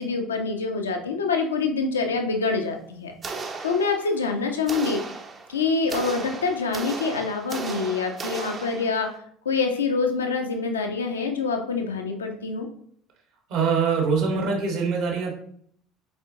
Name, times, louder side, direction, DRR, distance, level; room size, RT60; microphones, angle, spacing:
voice 1, 0.0-3.1 3.6-5.0 5.5-9.1 9.4-12.7, left 4 dB, 75° left, 4 dB, 0.8 m, -26 dB
sound 1, 3.2-4.3 4.7-9.2, right 4 dB, 35° right, 0.9 m, -35 dB
voice 2, 13.5-15.3, right 5 dB, 55° right, 0 dB, 1.9 m, -23 dB
7.7 x 4.4 x 2.8 m, 0.65 s
figure-of-eight pair, 60°, 0 cm